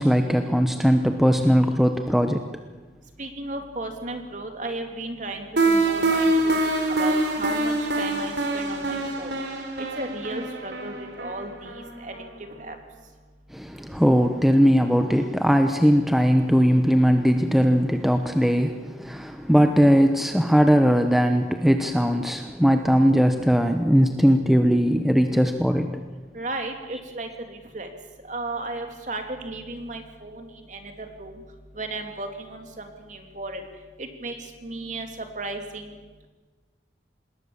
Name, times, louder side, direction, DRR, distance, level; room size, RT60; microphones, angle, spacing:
voice 1, 0.0-2.4 13.5-26.0, equal, ahead, 6 dB, 0.9 m, -19 dB
voice 2, 3.2-6.6 7.0-9.3 9.8-12.1 12.6-12.8 26.3-27.9 28.3-31.3 31.8-33.6 34.0-34.3 34.6-36.0, right 2 dB, 45° right, 5 dB, 3.0 m, -35 dB
sound 1, 5.6-12.3, right 2 dB, 85° right, 3.5 m, -25 dB
26.5 x 20.5 x 7.3 m, 1.3 s
head